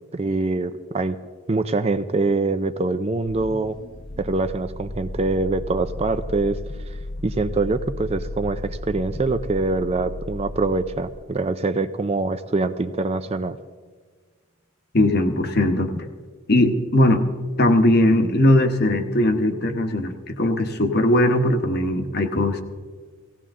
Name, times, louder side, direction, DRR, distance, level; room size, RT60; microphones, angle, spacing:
voice 1, 0.1-1.2 1.5-3.8 4.2-6.6 6.9-7.0 7.2-13.6, right 3 dB, 30° right, 11 dB, 0.4 m, -24 dB
sound 1, 3.3-11.5, left 1 dB, 20° left, 0.6 m, -34 dB
voice 2, 14.9-16.1 16.5-17.2 17.6-22.6, left 1 dB, 45° left, 6 dB, 1.1 m, -19 dB
18.0 x 16.5 x 3.7 m, 1.5 s
head